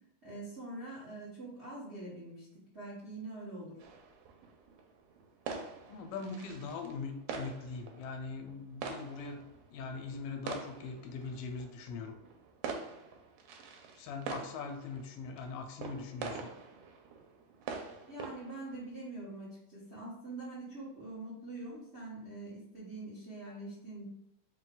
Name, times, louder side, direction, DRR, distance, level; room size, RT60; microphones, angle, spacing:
voice 1, 0.2-3.9 18.1-24.1, right 2 dB, 60° right, -9 dB, 0.6 m, -44 dB
sound 1, 3.8-18.9, right 5 dB, 85° right, 2.2 m, -45 dB
voice 2, 5.9-9.4 9.7-12.2 14.0-16.5, left 4 dB, 85° left, 4 dB, 2.3 m, -41 dB
5.1 x 2.3 x 3.8 m, 0.78 s
omnidirectional pair, 3.8 m